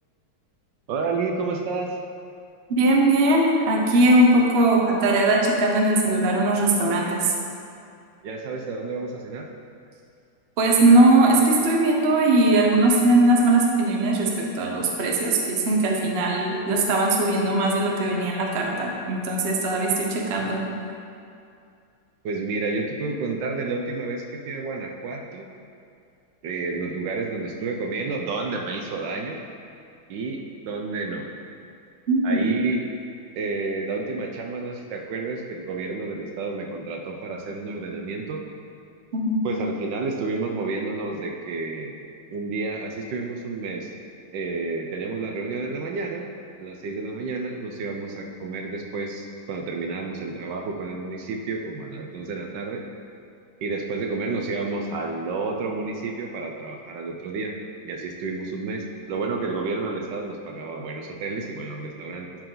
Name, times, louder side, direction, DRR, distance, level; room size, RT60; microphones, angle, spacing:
voice 1, 0.9-2.0 8.2-9.5 22.2-25.5 26.4-29.4 30.1-31.3 32.2-32.9 33.4-38.4 39.4-41.9 42.3-43.9 44.3-46.3 46.6-52.8 53.6-57.6 57.8-62.3, right 3 dB, 70° right, 1 dB, 1.2 m, -30 dB
voice 2, 2.7-7.3 10.6-20.6 32.1-32.4 39.1-39.4, right 2 dB, 50° right, -1 dB, 0.8 m, -20 dB
11.5 x 4.6 x 3.8 m, 2.4 s
omnidirectional pair, 2.2 m